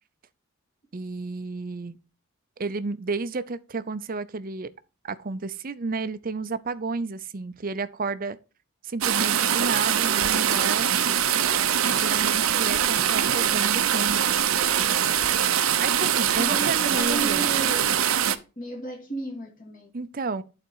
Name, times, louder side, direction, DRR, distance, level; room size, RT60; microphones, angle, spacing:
voice 1, 0.9-2.0 2.6-4.7 5.0-8.4 8.8-10.9 11.9-14.4 15.8-17.6 19.9-20.4, right 4 dB, 45° right, 0.6 m, -32 dB
sound 1, 9.0-18.4, right 9 dB, 90° right, 0.8 m, -23 dB
voice 2, 16.3-18.1 18.6-19.9, right 3 dB, 40° left, 2.4 m, -33 dB
11.0 x 4.3 x 4.6 m
head